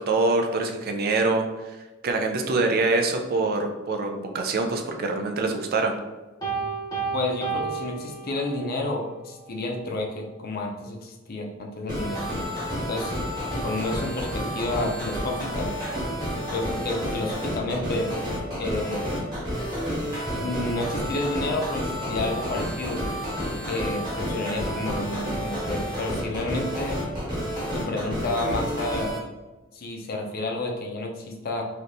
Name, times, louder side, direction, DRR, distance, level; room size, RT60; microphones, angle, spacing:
voice 1, 0.0-1.8 2.0-6.0, right 3 dB, 50° right, 4 dB, 0.4 m, -25 dB
Piano, 6.4-8.8, right 5 dB, 20° left, 0.8 m, -31 dB
voice 2, 7.1-12.3 12.9-13.1 13.6-15.7 16.5-18.1 18.6-19.1 20.0-20.1 20.4-23.0 23.6-27.0 27.7-29.2 29.7-31.6, left 2 dB, 50° left, 1 dB, 0.5 m, -30 dB
sound 1, 11.9-29.2, equal, 20° right, 1.2 m, -30 dB
3.3 x 2.7 x 2.6 m, 1.2 s
head